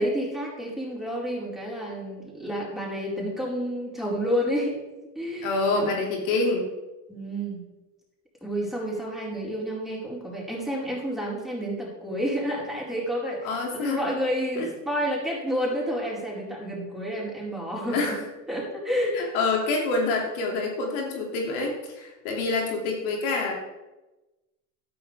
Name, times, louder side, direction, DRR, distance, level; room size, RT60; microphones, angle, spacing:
voice 1, 0.0-4.9 5.1-6.0 7.1-7.6 8.4-18.2 18.5-19.2, equal, ahead, -5 dB, 4.6 m, -30 dB
voice 2, 5.4-6.7 13.4-14.0 14.6-14.7 17.9-18.2 19.1-23.5, left 3 dB, 80° left, 0 dB, 2.7 m, -26 dB
13.5 x 10.5 x 3.5 m, 1.1 s
supercardioid pair, 100°, 42 cm